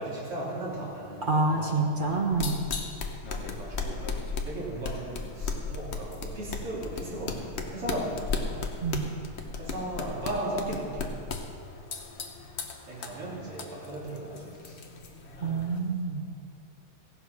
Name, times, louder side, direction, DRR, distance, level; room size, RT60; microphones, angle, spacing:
voice 1, 0.0-1.8 3.4-4.0 4.5-8.6 9.6-11.2 12.9-14.8, right 1 dB, 85° right, -5 dB, 3.8 m, -36 dB
voice 2, 1.3-2.6 8.8-9.1 15.4-16.2, right 3 dB, 45° right, 1 dB, 0.6 m, -27 dB
sound 1, 2.0-15.8, left 4 dB, 55° left, 0.7 m, -36 dB
16.0 x 8.0 x 6.0 m, 2.4 s
omnidirectional pair, 2.4 m